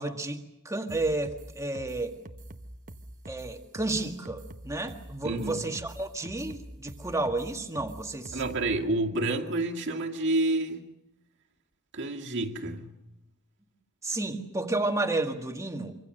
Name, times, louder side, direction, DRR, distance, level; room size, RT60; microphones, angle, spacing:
voice 1, 0.0-2.2 3.3-8.4 14.0-15.9, right 2 dB, 15° right, 1.8 m, -31 dB
sound 1, 0.9-8.8, right 1 dB, 35° right, 1.1 m, -45 dB
voice 2, 5.2-5.6 8.3-10.8 11.9-12.9, right 2 dB, 55° right, 2.4 m, -29 dB
25.5 x 25.0 x 6.6 m
head